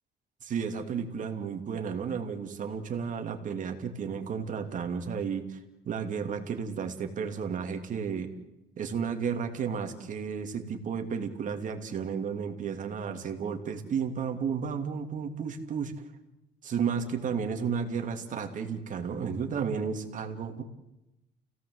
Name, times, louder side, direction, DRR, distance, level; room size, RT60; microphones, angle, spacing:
voice 1, 0.4-5.6 5.8-8.3 8.8-15.9 16.6-20.6, right 6 dB, 50° right, 5 dB, 3.0 m, -33 dB
29.5 x 17.0 x 8.1 m, 0.94 s
cardioid pair, 110°, 17 cm